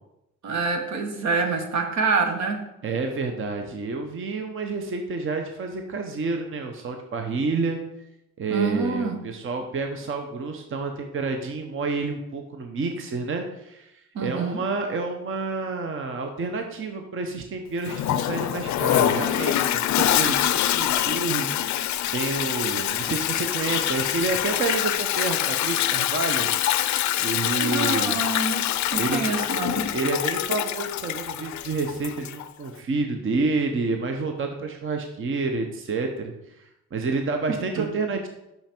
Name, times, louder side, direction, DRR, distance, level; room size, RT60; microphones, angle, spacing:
voice 1, 0.4-2.6 8.5-9.2 14.1-14.6 27.6-28.6 28.9-29.9 37.8-37.9, right 4 dB, 65° right, 5 dB, 1.2 m, -26 dB
voice 2, 2.8-7.8 8.4-20.4 20.6-26.5 27.2-28.2 29.0-29.3 29.9-38.3, right 3 dB, 45° right, 4 dB, 0.9 m, -29 dB
Toilet flush, 17.9-32.5, left 12 dB, 70° left, 0.5 m, -25 dB
5.8 x 5.7 x 4.4 m, 0.88 s
cardioid pair, 90°, 30 cm